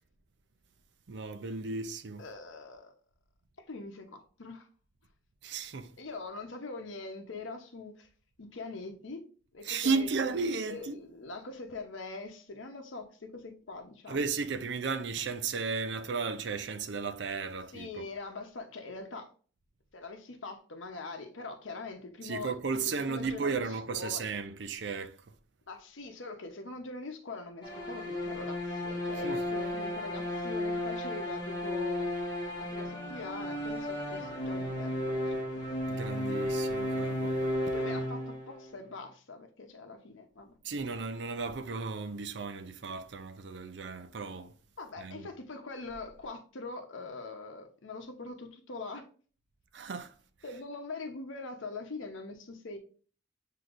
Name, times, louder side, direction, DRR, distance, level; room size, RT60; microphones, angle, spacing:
voice 1, 1.1-2.3 5.4-5.9 9.7-11.0 14.1-17.9 22.2-25.2 29.2-29.4 35.9-37.4 40.6-44.5 45.0-45.3 49.7-50.1, right 4 dB, 65° right, 0.5 m, -34 dB
voice 2, 2.2-2.9 3.6-4.7 6.0-8.1 8.4-9.2 9.5-10.4 10.6-14.2 17.7-19.3 19.9-22.6 23.1-24.2 25.7-32.1 32.6-35.7 37.7-40.5 44.8-49.1 50.4-52.8, left 3 dB, 85° left, 0.8 m, -43 dB
sound 1, 27.6-38.7, left 1 dB, 25° left, 1.6 m, -34 dB
7.7 x 2.8 x 2.5 m
head